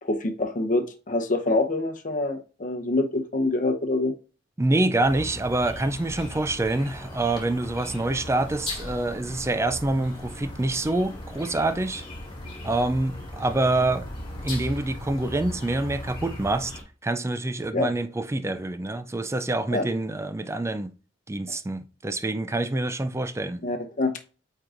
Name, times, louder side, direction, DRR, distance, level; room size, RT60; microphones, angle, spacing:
voice 1, 0.0-4.1 17.7-17.9 19.7-19.8 23.6-24.1, left 2 dB, 45° left, 0.9 m, -25 dB
voice 2, 4.6-12.0 12.6-14.1 14.4-16.7 17.0-20.9 21.3-23.6, right 2 dB, 15° right, 0.4 m, -26 dB
sound 1, 5.0-16.8, left 1 dB, 25° left, 2.1 m, -38 dB
8.5 x 4.6 x 2.5 m
head